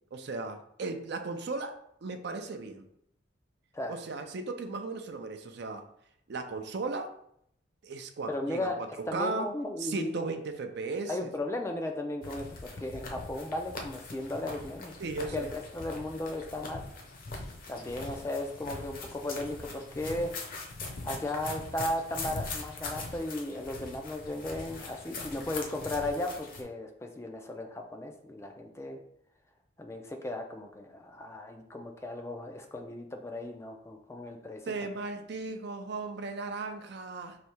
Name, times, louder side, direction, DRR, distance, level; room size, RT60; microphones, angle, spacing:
voice 1, 0.1-1.7 2.0-2.8 3.9-5.8 6.3-7.1 7.8-9.5 9.8-11.3 15.0-15.5 34.7-37.4, right 3 dB, 60° right, 6 dB, 0.5 m, -36 dB
voice 2, 8.3-8.8 9.1-10.1 11.1-14.9 15.3-16.8 17.7-20.3 21.0-29.0 29.8-34.7, left 1 dB, 15° left, 3 dB, 0.3 m, -36 dB
sound 1, 12.2-26.6, left 3 dB, 45° left, 0.7 m, -41 dB
3.3 x 2.7 x 4.4 m, 0.70 s
head